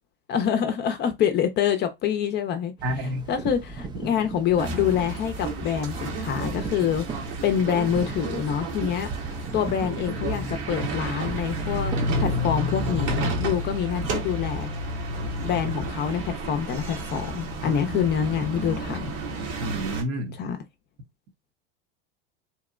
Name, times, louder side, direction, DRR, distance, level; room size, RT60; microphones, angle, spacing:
voice 1, 0.3-2.7 3.0-7.1 7.4-9.1 9.5-14.7 15.4-19.1 20.3-20.6, left 8 dB, 35° left, 0.5 m, -26 dB
sound 1, 2.8-14.6, right 4 dB, 15° right, 0.3 m, -37 dB
voice 2, 2.8-3.2 19.6-20.3, equal, 50° right, 0.7 m, -29 dB
sound 2, 4.6-20.0, equal, 70° right, 1.1 m, -31 dB
2.8 x 2.1 x 2.4 m
hypercardioid pair, 100°, 29 cm